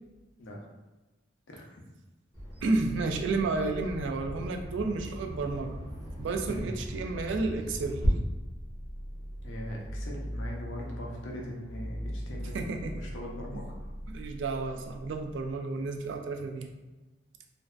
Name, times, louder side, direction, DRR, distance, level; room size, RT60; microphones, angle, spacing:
voice 1, 1.5-1.9 6.5-6.7 9.4-13.8, equal, 90° left, -1 dB, 0.6 m, -41 dB
Bird vocalization bird call bird song, 2.3-8.1, equal, 15° left, 0.9 m, -40 dB
voice 2, 2.6-5.8 6.2-8.0 12.5-13.0 13.5-13.6 14.1-16.7, right 3 dB, 75° right, 4 dB, 0.3 m, -31 dB
sound 1, 8.3-15.5, equal, 60° right, 1.0 m, -40 dB
2.5 x 2.1 x 2.3 m, 1.2 s
head